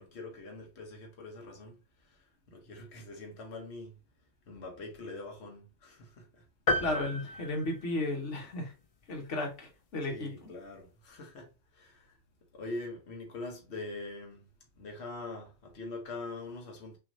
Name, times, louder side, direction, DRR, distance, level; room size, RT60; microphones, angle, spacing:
voice 1, 0.0-3.9 4.5-6.4 9.2-9.3 10.1-12.2 12.5-14.5 14.8-17.0, left 2 dB, 65° left, 1.3 m, -44 dB
sound 1, 6.7-8.5, left 2 dB, 40° left, 0.5 m, -33 dB
voice 2, 6.8-8.7 9.1-10.5, left 2 dB, 80° left, 1.5 m, -34 dB
6.0 x 3.1 x 2.7 m
omnidirectional pair, 1.2 m